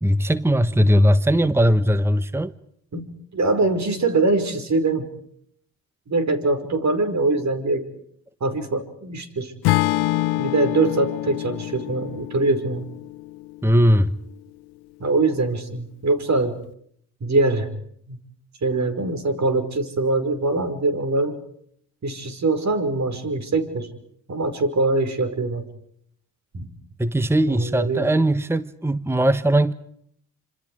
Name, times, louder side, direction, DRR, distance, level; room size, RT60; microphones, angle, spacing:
voice 1, 0.0-2.5 13.6-14.1 27.0-29.7, equal, 5° right, 15 dB, 1.2 m, -19 dB
voice 2, 3.3-5.1 6.1-7.9 8.4-9.5 10.4-12.9 15.0-16.6 17.2-17.7 18.1-18.2 18.6-21.4 22.0-23.9 24.3-25.6 26.5-26.7 27.5-28.1, right 3 dB, 45° right, 10 dB, 5.4 m, -23 dB
Acoustic guitar / Strum, 9.6-13.9, left 18 dB, 85° left, 0.9 m, -26 dB
28.0 x 27.0 x 5.0 m, 0.67 s
supercardioid pair, 60°, 37 cm